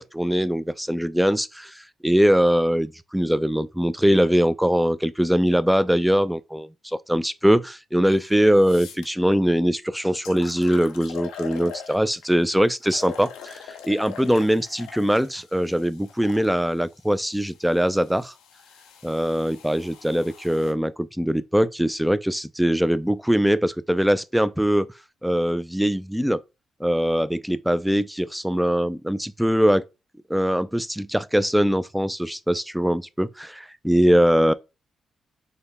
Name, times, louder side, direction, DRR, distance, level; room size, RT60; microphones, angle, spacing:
voice 1, 0.0-18.3 19.0-24.9 25.2-26.4 26.8-29.8 30.3-34.5, equal, 5° right, 0.3 m, -22 dB
sound 1, 8.1-8.2 8.6-9.1 9.8-9.9 10.2-12.3 12.8-16.5 17.3-20.7, left 8 dB, 90° left, 0.4 m, -42 dB
3.8 x 2.1 x 3.4 m
supercardioid pair, 55°, 0 cm